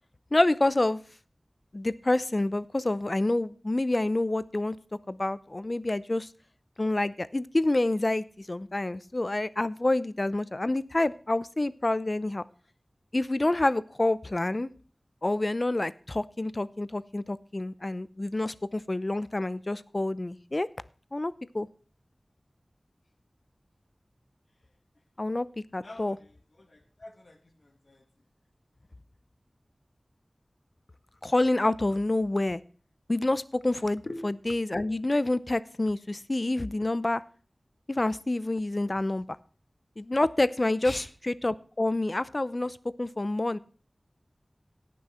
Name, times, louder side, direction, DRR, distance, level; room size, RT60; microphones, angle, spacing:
voice 1, 0.3-1.0 1.7-4.8 5.1-6.3 6.8-12.4 13.1-14.7 15.2-20.7 21.1-21.7 25.2-26.2 31.2-32.6 33.1-37.2 37.9-39.2 40.0-43.6, left 2 dB, 45° left, 16 dB, 0.6 m, -28 dB
voice 2, 25.8-28.0 34.1-34.2 40.8-41.1, left 2 dB, 65° left, 4 dB, 1.6 m, -43 dB
17.5 x 6.2 x 4.3 m, 0.41 s
wide cardioid pair, 45°, 0 cm